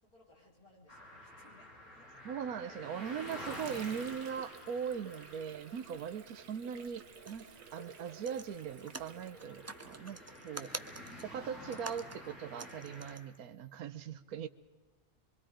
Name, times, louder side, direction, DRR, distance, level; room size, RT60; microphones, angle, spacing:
voice 1, 0.0-2.3, left 1 dB, 80° left, -2 dB, 5.0 m, -64 dB
sound 1, 0.9-13.2, left 1 dB, 55° left, 5.8 m, -50 dB
voice 2, 2.2-7.4 7.7-10.7 11.2-14.5, right 7 dB, 80° right, 9 dB, 1.4 m, -40 dB
Water / Sink (filling or washing), 2.7-10.4, right 6 dB, 65° right, 1.5 m, -54 dB
sound 2, 7.3-7.5 7.8-8.0 8.2-13.4 13.8-13.9, right 2 dB, 25° right, 0.3 m, -47 dB
24.5 x 24.5 x 5.0 m, 1.2 s
omnidirectional pair, 1.5 m